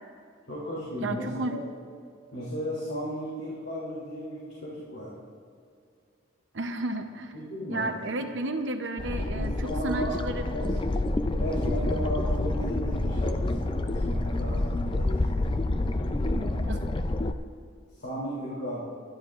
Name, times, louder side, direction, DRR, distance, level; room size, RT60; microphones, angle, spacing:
voice 1, 0.5-1.6 2.3-5.2 7.3-8.0 9.3-10.1 10.5-10.7 11.4-15.4 16.0-16.6 17.9-18.8, equal, 60° left, -7 dB, 3.1 m, -35 dB
voice 2, 1.0-1.6 6.5-7.3 7.7-10.5 16.7-16.8, right 2 dB, 65° right, 6 dB, 0.8 m, -32 dB
sound 1, 9.0-17.3, left 2 dB, 25° left, 0.4 m, -28 dB
23.5 x 11.5 x 2.5 m, 2.3 s
head